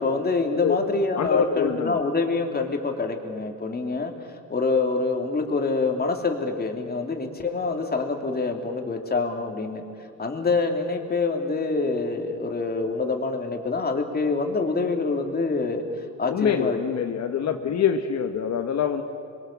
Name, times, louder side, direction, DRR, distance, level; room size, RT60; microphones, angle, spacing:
voice 1, 0.0-9.8 10.2-16.8 17.4-17.7, left 3 dB, 30° left, 3 dB, 3.1 m, -26 dB
voice 2, 1.1-2.0 16.3-19.0, left 7 dB, 60° left, 5 dB, 1.4 m, -25 dB
26.5 x 22.5 x 7.3 m, 2.4 s
cardioid pair, 90°, 30 cm